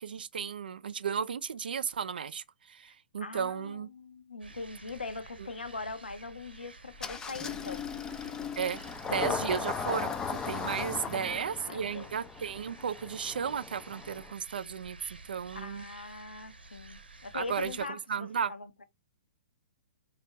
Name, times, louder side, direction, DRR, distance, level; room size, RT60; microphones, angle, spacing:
voice 1, 0.0-3.9 8.6-8.8 9.1-15.8 17.3-18.5, right 7 dB, 65° right, 0.4 m, -34 dB
voice 2, 3.2-7.8 11.0-12.1 15.5-18.8, left 3 dB, 80° left, 0.5 m, -42 dB
sound 1, 4.4-17.9, right 3 dB, 80° right, 0.8 m, -52 dB
Engine starting, 7.0-14.3, left 6 dB, 15° left, 0.3 m, -37 dB
3.4 x 2.4 x 3.0 m
figure-of-eight pair, 115°, 5 cm